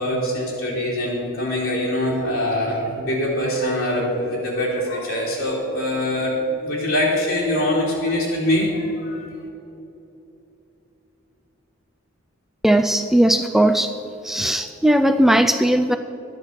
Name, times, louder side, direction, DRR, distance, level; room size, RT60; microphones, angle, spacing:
voice 1, 0.0-9.3, left 1 dB, 70° left, -6 dB, 3.0 m, -23 dB
voice 2, 12.6-13.9 14.2-16.0, right 1 dB, ahead, 7 dB, 0.3 m, -17 dB
12.5 x 9.9 x 5.6 m, 2.9 s
head